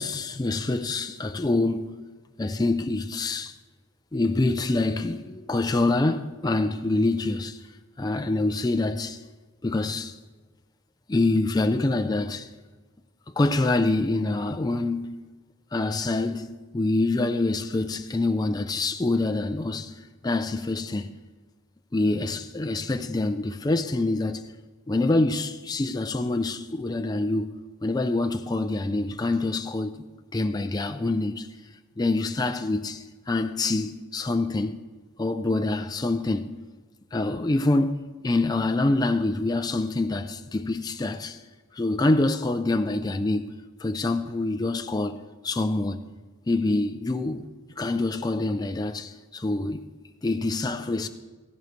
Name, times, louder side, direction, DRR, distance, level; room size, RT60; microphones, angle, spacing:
voice 1, 0.0-1.9 2.4-3.6 4.1-7.6 8.0-9.2 9.6-10.2 11.1-12.5 13.4-15.1 15.7-21.1 21.9-24.5 24.9-27.5 27.8-30.0 30.3-31.5 32.0-34.8 35.2-36.5 37.1-41.4 41.7-43.5 43.8-46.1 46.5-47.5 47.8-49.9 50.2-51.1, left 2 dB, 20° left, 0.4 m, -26 dB
15.5 x 15.5 x 3.2 m
head